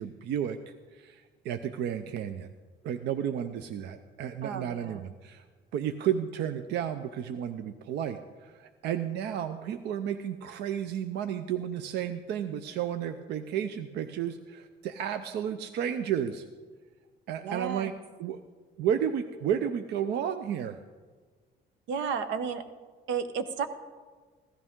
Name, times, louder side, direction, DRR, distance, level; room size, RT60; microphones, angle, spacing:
voice 1, 0.0-2.5 2.8-5.4 5.7-16.5 17.3-17.9 18.2-18.4 18.8-20.8, right 9 dB, 65° right, 9 dB, 0.5 m, -32 dB
voice 2, 4.4-5.1 17.4-17.9 21.9-22.6 23.1-23.7, right 6 dB, 85° right, 10 dB, 0.9 m, -32 dB
15.5 x 13.5 x 3.7 m, 1.5 s
cardioid pair, 170°, 19 cm